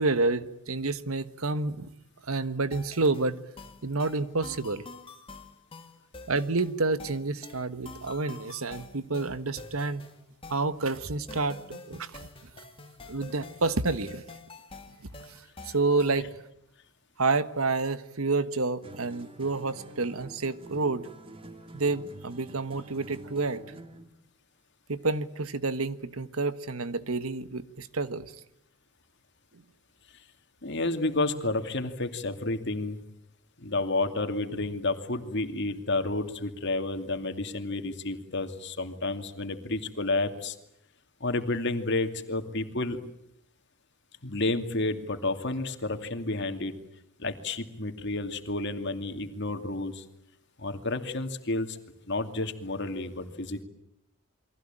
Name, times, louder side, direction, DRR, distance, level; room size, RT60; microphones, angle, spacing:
voice 1, 0.0-1.9 2.3-3.4 3.8-4.8 6.3-10.0 10.5-12.1 13.1-14.2 15.0-15.4 15.6-16.3 17.2-21.1 21.7-23.6 24.9-28.3 29.5-29.6, right 3 dB, 85° right, 13 dB, 1.4 m, -29 dB
sound 1, 2.7-16.3, left 3 dB, 25° left, 2.1 m, -47 dB
sound 2, 18.8-24.2, right 1 dB, 25° right, 1.9 m, -47 dB
voice 2, 30.6-33.0 33.6-40.6 41.2-43.0 44.2-46.8 47.2-50.0 50.6-51.8 52.1-53.6, left 2 dB, 55° left, 7 dB, 2.5 m, -30 dB
29.0 x 23.0 x 8.9 m, 0.78 s
head